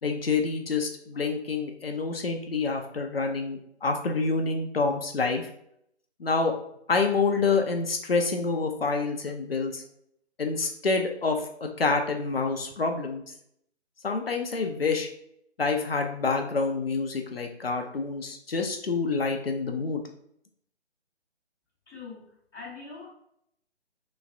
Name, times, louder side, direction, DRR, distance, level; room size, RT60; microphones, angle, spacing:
voice 1, 0.0-5.4 6.2-6.5 6.9-9.8 10.4-13.2 14.0-15.1 15.6-20.0, left 4 dB, 60° left, 3 dB, 0.6 m, -27 dB
voice 2, 21.9-23.1, left 4 dB, ahead, -26 dB, 0.6 m, -43 dB
3.1 x 3.1 x 2.5 m, 0.71 s
figure-of-eight pair, 145°, 34 cm